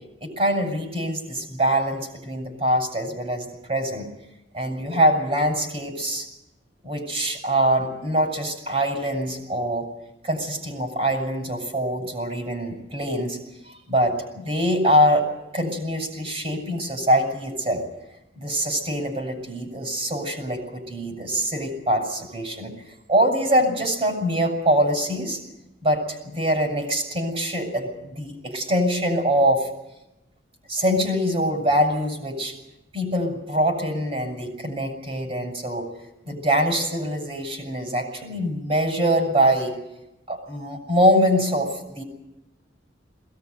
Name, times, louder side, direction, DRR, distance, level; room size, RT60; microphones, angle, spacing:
voice 1, 0.2-4.0 4.5-6.3 6.8-9.9 10.2-13.4 13.6-15.3 15.5-17.8 18.4-25.4 25.8-29.7 30.7-32.6 32.9-35.9 36.2-39.7 40.3-42.0, equal, 35° right, 2 dB, 6.7 m, -24 dB
21.5 x 18.5 x 9.4 m, 0.93 s
head